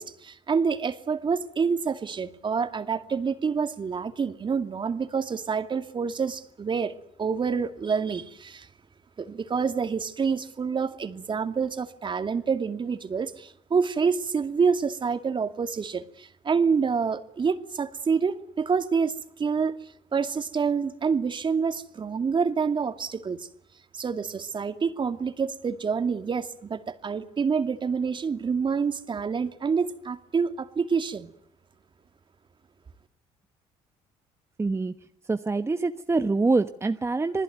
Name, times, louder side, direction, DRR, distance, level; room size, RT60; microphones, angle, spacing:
voice 1, 0.0-6.9 7.2-8.7 9.2-19.8 20.1-23.5 23.9-31.3, right 5 dB, 35° right, 9 dB, 2.5 m, -27 dB
voice 2, 34.6-34.9 35.3-37.4, right 3 dB, 20° right, 9 dB, 1.2 m, -25 dB
28.0 x 20.0 x 9.5 m, 0.71 s
supercardioid pair, 80°, 14 cm